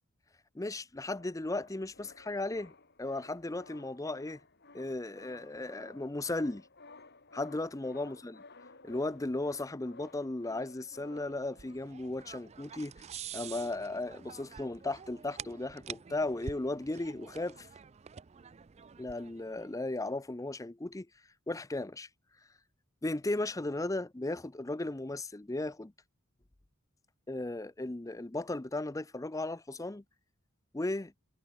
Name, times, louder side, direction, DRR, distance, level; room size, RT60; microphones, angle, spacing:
voice 1, 0.5-2.7 3.0-4.4 4.7-6.7 7.3-8.4 8.8-12.9 13.3-17.7 19.0-21.1 21.5-22.1 23.0-25.9 27.3-30.0 30.7-31.1, left 2 dB, 15° left, 0.6 m, -36 dB
sound 1, 1.0-12.8 13.3-13.4 13.6-13.8 14.3-15.6 15.9-17.6, left 3 dB, 50° left, 4.4 m, -56 dB
sound 2, 11.1-19.7, right 7 dB, 30° right, 0.4 m, -48 dB
head